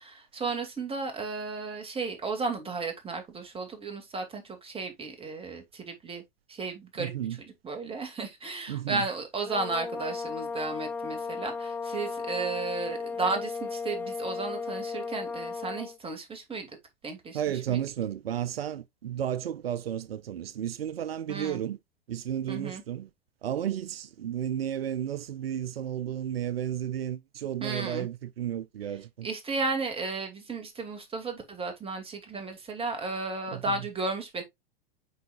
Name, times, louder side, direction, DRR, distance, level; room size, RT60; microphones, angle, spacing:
voice 1, 0.0-6.2 6.5-7.1 7.6-16.7 17.0-17.4 17.7-17.8 21.3-21.6 22.5-22.8 27.6-28.1 29.2-34.4, right 3 dB, 20° right, 2.4 m, -34 dB
voice 2, 7.0-7.4 8.7-9.1 17.3-21.8 22.1-23.1 23.4-29.3 33.5-33.8, right 10 dB, 85° right, 0.5 m, -33 dB
sound 1, 9.4-16.0, left 4 dB, 5° left, 0.4 m, -35 dB
8.2 x 4.8 x 2.4 m
hypercardioid pair, 100°, 29 cm